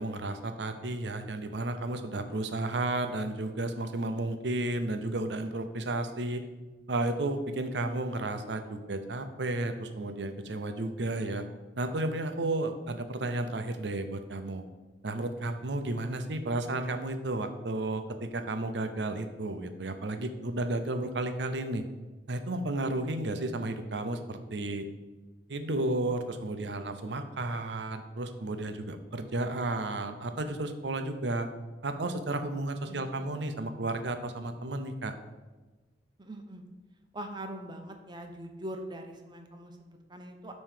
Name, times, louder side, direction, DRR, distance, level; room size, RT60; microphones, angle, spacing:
voice 1, 0.0-6.4 6.9-11.4 11.8-14.6 15.0-21.8 22.3-24.9 25.5-31.5 31.8-35.1, right 2 dB, 70° right, 8 dB, 0.7 m, -33 dB
voice 2, 32.9-33.2 36.2-36.6 37.1-40.5, right 1 dB, 25° right, 4 dB, 0.8 m, -42 dB
9.0 x 3.1 x 6.6 m, 1.2 s
head